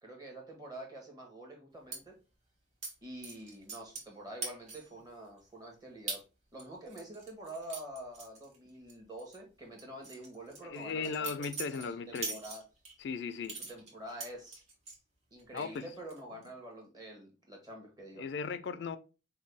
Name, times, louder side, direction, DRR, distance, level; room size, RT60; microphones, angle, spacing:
voice 1, 0.0-2.1 3.0-6.2 6.5-11.5 11.7-12.6 13.7-14.6 15.3-18.2, right 1 dB, 20° right, 1.3 m, -47 dB
sound 1, 1.9-2.0 2.8-2.9 3.2-4.1 4.4-4.9 5.4-5.5 6.1-6.2 6.6-8.9 9.2-9.4 9.8-12.9 13.4-15.0 15.4-15.8 16.1-16.5, right 3 dB, 40° right, 1.4 m, -42 dB
voice 2, 10.6-12.4 13.0-13.6 15.5-15.8 18.2-19.0, left 5 dB, 70° left, 0.3 m, -37 dB
5.2 x 2.3 x 3.3 m
head